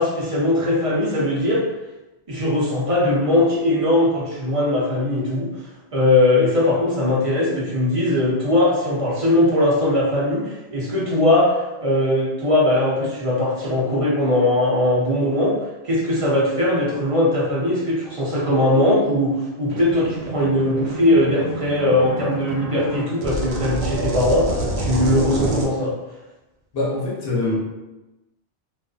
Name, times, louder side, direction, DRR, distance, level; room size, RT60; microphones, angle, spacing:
voice 1, 0.0-1.6 2.3-5.5 5.9-15.5 15.8-25.9, left 1 dB, 35° right, -6 dB, 0.6 m, -20 dB
sound 1, 19.7-25.6, right 1 dB, 90° right, 0.9 m, -27 dB
voice 2, 26.7-27.6, left 2 dB, 60° left, -4 dB, 1.0 m, -23 dB
2.5 x 2.4 x 2.3 m, 1.0 s
omnidirectional pair, 1.2 m